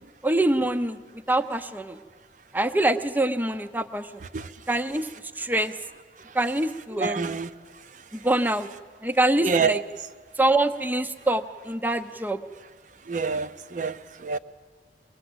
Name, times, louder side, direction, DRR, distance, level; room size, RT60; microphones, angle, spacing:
voice 1, 0.2-1.0 1.3-2.0 2.5-4.2 4.7-5.1 5.4-5.7 6.3-7.3 8.1-8.7 9.0-9.8 10.4-12.4, right 1 dB, 10° right, 0.6 m, -24 dB
voice 2, 6.9-7.5 9.4-9.8 13.1-14.4, right 5 dB, 45° right, 0.7 m, -27 dB
23.0 x 19.5 x 7.9 m
head